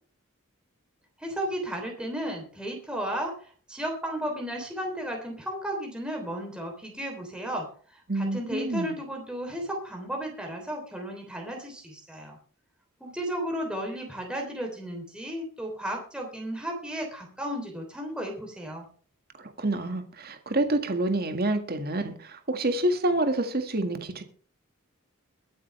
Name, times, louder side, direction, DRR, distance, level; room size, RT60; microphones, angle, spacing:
voice 1, 1.2-12.4 13.0-18.8, right 1 dB, 5° right, 1 dB, 3.3 m, -34 dB
voice 2, 8.1-9.0 19.4-24.2, right 2 dB, 45° right, 6 dB, 1.9 m, -28 dB
22.5 x 9.1 x 3.3 m, 0.43 s
head